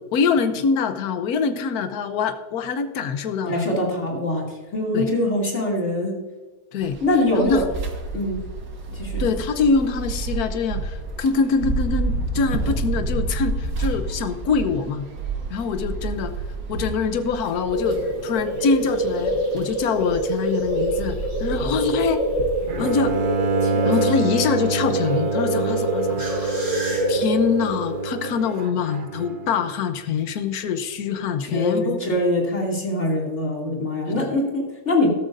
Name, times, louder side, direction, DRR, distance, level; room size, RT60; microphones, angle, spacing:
voice 1, 0.1-3.7 4.9-5.1 6.7-7.0 7.3-7.7 9.2-15.1 15.5-16.3 16.7-22.2 22.8-23.1 23.8-26.5 27.1-32.0 34.1-34.3, left 5 dB, 75° left, 9 dB, 1.3 m, -24 dB
voice 2, 3.5-6.1 7.0-7.6 8.1-8.4 8.9-9.2 23.6-24.1 31.4-35.1, left 1 dB, 45° left, -2 dB, 3.0 m, -23 dB
sound 1, 6.8-23.3, right 3 dB, 90° right, 2.1 m, -30 dB
sound 2, 17.7-28.7, right 1 dB, 60° right, 4.7 m, -26 dB
Bowed string instrument, 22.7-29.7, right 4 dB, 40° right, 0.8 m, -27 dB
14.0 x 13.0 x 2.6 m, 1.2 s
omnidirectional pair, 1.7 m